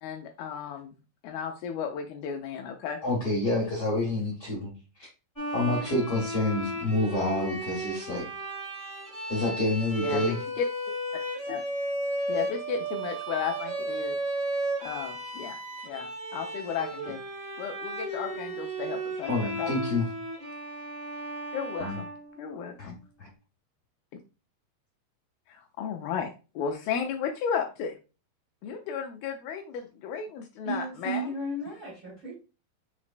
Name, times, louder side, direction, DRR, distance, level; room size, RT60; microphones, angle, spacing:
voice 1, 0.0-1.0 1.2-3.0 10.0-10.6 11.5-11.6 12.3-14.2 14.8-15.6 15.8-17.2 17.6-19.7 21.5-22.1 22.4-23.0 25.5-26.3 26.6-28.0 28.6-31.3, left 7 dB, 80° left, 3 dB, 2.2 m, -34 dB
voice 2, 3.0-4.7 5.0-5.1 5.5-8.3 9.3-10.4 19.3-20.1 21.8-22.0 22.8-22.9 23.2-23.3, left 2 dB, 65° left, -4 dB, 1.5 m, -28 dB
Bowed string instrument, 5.4-22.8, right 2 dB, 20° left, 0.4 m, -34 dB
voice 3, 30.6-32.3, right 2 dB, 80° right, -5 dB, 1.1 m, -34 dB
5.9 x 3.0 x 2.5 m, 0.31 s
omnidirectional pair, 4.6 m